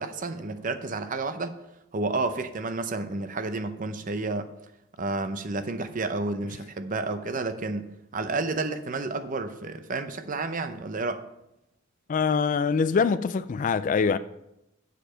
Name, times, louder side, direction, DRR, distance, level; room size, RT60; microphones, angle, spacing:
voice 1, 0.0-1.6 1.9-4.5 5.0-11.2, right 3 dB, 40° right, 0.6 m, -31 dB
voice 2, 12.1-14.2, left 5 dB, 40° left, 0.3 m, -24 dB
7.8 x 6.8 x 5.6 m
head